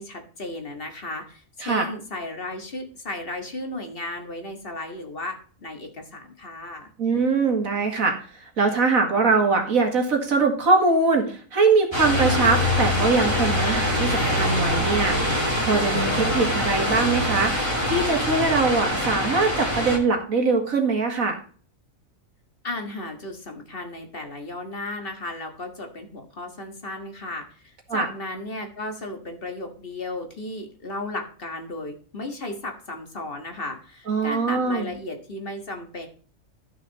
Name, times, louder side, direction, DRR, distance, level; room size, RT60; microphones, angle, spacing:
voice 1, 0.0-6.9 22.6-36.1, left 2 dB, 45° left, 5 dB, 1.8 m, -35 dB
voice 2, 7.0-15.2 15.6-17.6 17.9-21.4 27.9-28.1 34.1-34.9, right 4 dB, 80° right, 3 dB, 2.4 m, -22 dB
sound 1, 11.9-20.0, left 1 dB, 20° right, 2.4 m, -24 dB
13.0 x 6.2 x 4.0 m, 0.42 s
omnidirectional pair, 1.4 m